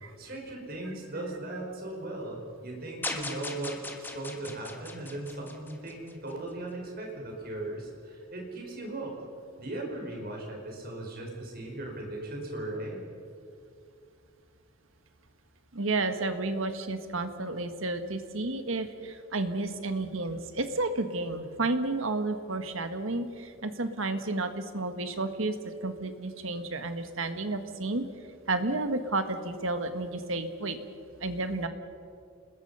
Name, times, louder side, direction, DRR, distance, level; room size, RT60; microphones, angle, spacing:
voice 1, 0.2-9.2 9.6-13.0, right 2 dB, 45° right, 0 dB, 5.3 m, -38 dB
sound 1, 3.0-6.3, left 2 dB, 10° left, 1.7 m, -39 dB
voice 2, 15.7-28.1 28.5-30.8 31.2-31.7, right 2 dB, 65° right, 8 dB, 1.6 m, -31 dB
29.0 x 21.0 x 5.6 m, 2.5 s
head